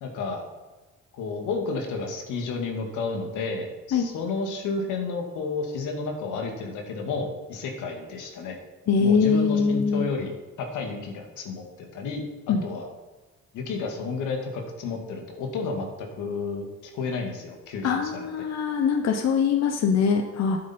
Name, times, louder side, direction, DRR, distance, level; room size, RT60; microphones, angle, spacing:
voice 1, 0.0-0.4 1.1-8.6 9.0-10.3 10.6-12.2 12.6-12.9 13.5-16.7 16.9-18.3, left 4 dB, 90° left, 2 dB, 2.0 m, -31 dB
voice 2, 8.9-10.1 12.5-12.6 17.8-20.6, left 6 dB, 60° left, 4 dB, 1.1 m, -22 dB
11.5 x 8.8 x 4.4 m, 1.2 s
cardioid pair, 90°, 30 cm